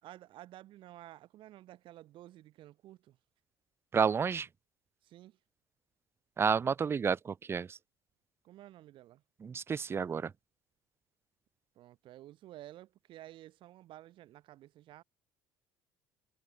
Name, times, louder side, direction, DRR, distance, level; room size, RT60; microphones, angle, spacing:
voice 1, 0.0-3.2 5.0-5.4 8.4-9.2 11.7-15.0, right 14 dB, 60° right, 5.1 m, -52 dB
voice 2, 3.9-4.5 6.4-7.8 9.4-10.3, right 6 dB, 25° right, 0.4 m, -30 dB
hypercardioid pair, 70°, 9 cm